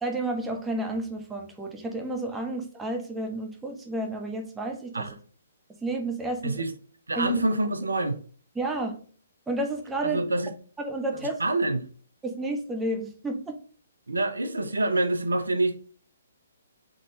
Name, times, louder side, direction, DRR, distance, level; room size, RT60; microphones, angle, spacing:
voice 1, 0.0-5.1 5.8-6.6 7.1-7.5 8.6-9.0 9.5-10.2 10.8-11.4 12.2-13.6, right 2 dB, 10° right, 0.6 m, -31 dB
voice 2, 7.1-8.2 10.0-10.5 11.1-11.9 14.1-15.8, right 2 dB, 75° right, 0.6 m, -26 dB
3.8 x 3.7 x 3.0 m
figure-of-eight pair, 125°, 0 cm